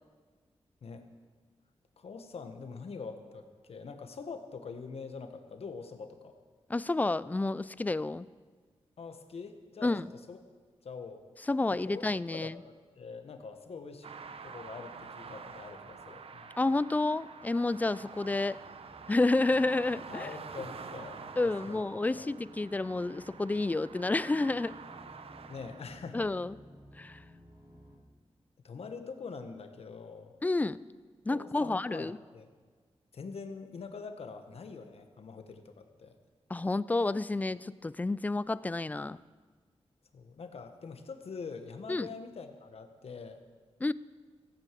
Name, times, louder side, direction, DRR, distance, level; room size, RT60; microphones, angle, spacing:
voice 1, 2.0-6.4 9.0-9.9 10.3-10.4 10.8-11.2 11.9-12.0 12.3-14.1 14.4-16.5 20.1-21.8 22.1-22.3 25.5-26.2 28.6-30.3 31.3-32.5 33.1-36.1 40.1-43.4, left 5 dB, 70° left, 7 dB, 1.3 m, -44 dB
voice 2, 6.7-8.3 9.8-10.1 11.5-12.6 16.6-18.6 19.1-20.3 21.4-24.8 26.1-26.5 27.0-27.2 30.4-30.8 31.3-32.2 36.5-39.2 41.9-42.1 43.8-43.9, left 2 dB, 15° left, 18 dB, 0.3 m, -30 dB
sound 1, 14.0-25.8, right 5 dB, 65° right, 0.8 m, -47 dB
sound 2, 18.6-28.0, left 1 dB, 30° right, 3.7 m, -55 dB
16.0 x 9.0 x 7.6 m, 1.5 s
wide cardioid pair, 130°, 11 cm